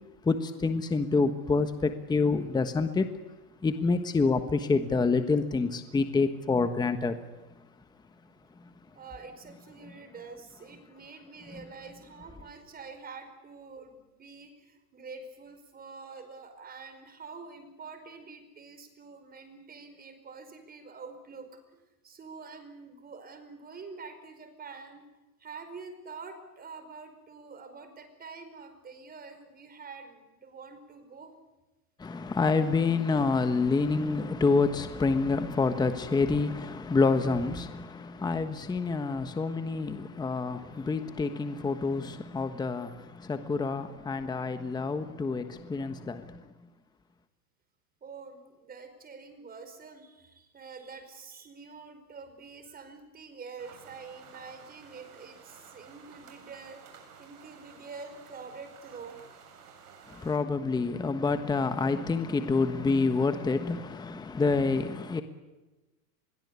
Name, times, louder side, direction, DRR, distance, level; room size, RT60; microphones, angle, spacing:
voice 1, 0.2-3.1 3.6-7.2 11.5-11.6 32.0-46.5 60.1-65.2, left 4 dB, 10° left, 1.3 m, -27 dB
voice 2, 8.4-25.0 25.4-31.3 48.0-56.8 57.2-59.4, right 4 dB, 20° right, 4.9 m, -46 dB
sound 1, 53.6-60.4, right 6 dB, 70° right, 7.9 m, -53 dB
25.5 x 22.0 x 8.3 m
supercardioid pair, 135°, 47 cm